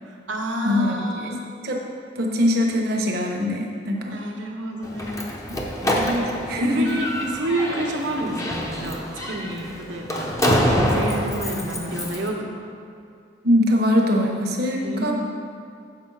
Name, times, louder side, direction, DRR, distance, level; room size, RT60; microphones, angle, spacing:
voice 1, 0.0-1.3 4.1-5.3 5.8-5.9 6.6-10.3 10.8-12.4 14.8-15.1, right 1 dB, 90° right, -1 dB, 1.2 m, -29 dB
voice 2, 0.6-1.4 1.6-1.8 2.1-4.1 5.8-6.9 13.4-15.1, left 1 dB, 60° right, 0 dB, 1.0 m, -22 dB
Slam, 4.8-12.3, equal, 15° left, 0.8 m, -26 dB
7.5 x 6.0 x 4.8 m, 2.4 s
head